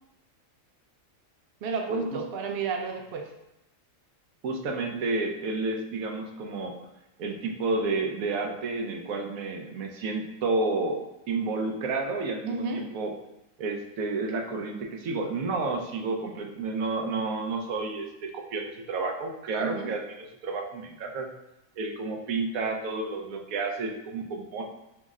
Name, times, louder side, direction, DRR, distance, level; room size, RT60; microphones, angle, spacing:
voice 1, 1.6-3.3 12.5-12.9 19.6-19.9, right 4 dB, 60° right, 3 dB, 0.7 m, -31 dB
voice 2, 4.4-6.8 7.2-11.0 11.3-13.1 13.6-20.0 20.4-21.3 21.8-24.6, right 3 dB, 90° right, 2 dB, 1.1 m, -30 dB
5.8 x 2.1 x 3.6 m, 0.88 s
omnidirectional pair, 1.4 m